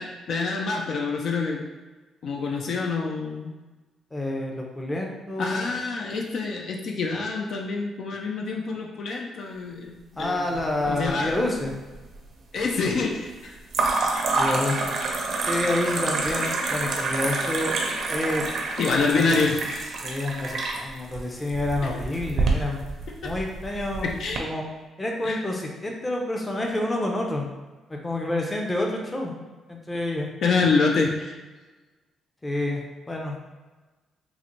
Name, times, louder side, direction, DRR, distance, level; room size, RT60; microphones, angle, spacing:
voice 1, 0.0-1.6 2.2-3.5 5.4-11.4 12.5-13.6 18.8-19.9 21.8-21.9 23.1-23.2 24.0-24.4 25.2-25.4 30.4-31.4, left 4 dB, 65° left, 0 dB, 0.4 m, -26 dB
voice 2, 4.1-5.7 10.2-11.7 14.3-14.9 15.5-17.7 18.1-18.5 19.1-19.2 20.0-22.8 23.2-24.1 24.4-24.6 25.0-27.5 27.9-29.3 29.7-30.3 32.4-33.4, left 1 dB, 20° left, 0 dB, 0.6 m, -28 dB
sound 1, 10.6-11.3 11.6-12.2 13.7-24.4, right 3 dB, 60° right, 0.6 m, -28 dB
3.8 x 2.1 x 3.0 m, 1.2 s
cardioid pair, 90°, 0 cm